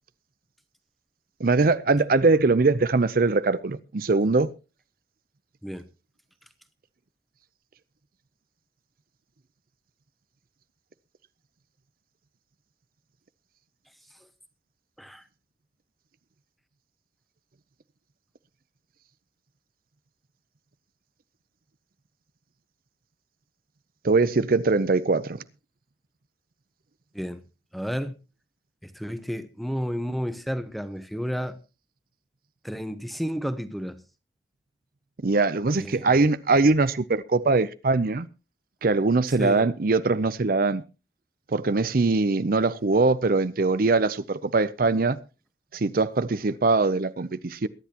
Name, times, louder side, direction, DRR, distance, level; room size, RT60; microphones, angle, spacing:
voice 1, 1.4-4.5 24.0-25.4 35.2-38.3 38.8-40.8 41.5-45.2 45.7-47.7, right 3 dB, 55° right, 0.6 m, -22 dB
voice 2, 27.7-28.2 28.8-31.6 32.6-34.0 35.8-36.2 39.4-39.7, equal, ahead, 1.0 m, -31 dB
22.5 x 10.5 x 2.9 m
head